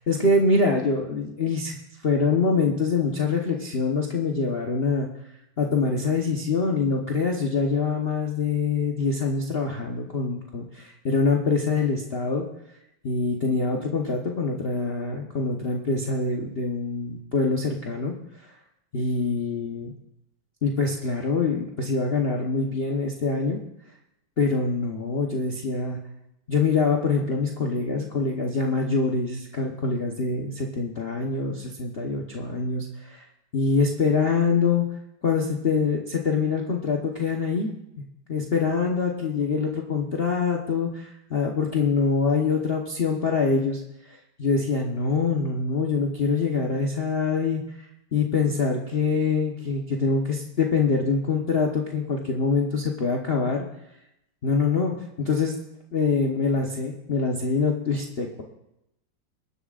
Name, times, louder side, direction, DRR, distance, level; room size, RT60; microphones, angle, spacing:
voice 1, 0.1-1.8 2.0-5.1 5.6-12.4 13.0-18.5 18.9-19.9 20.6-23.6 24.4-26.0 26.5-33.2 33.5-34.8 35.2-37.7 38.3-43.8 44.1-47.6 48.1-53.6 54.4-55.6 55.9-58.4, left 4 dB, 40° left, 0 dB, 1.1 m, -25 dB
23.5 x 11.5 x 2.5 m, 0.84 s
omnidirectional pair, 2.1 m